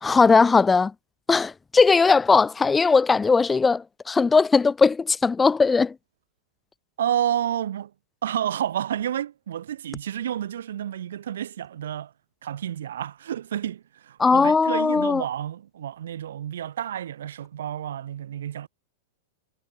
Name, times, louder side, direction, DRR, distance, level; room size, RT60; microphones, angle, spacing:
voice 1, 0.0-0.9 1.3-5.9 14.2-15.2, left 4 dB, 10° left, 0.8 m, -19 dB
voice 2, 7.0-7.9 8.2-12.1 12.4-18.7, right 10 dB, 80° right, 3.1 m, -30 dB
hypercardioid pair, 130°, 0 cm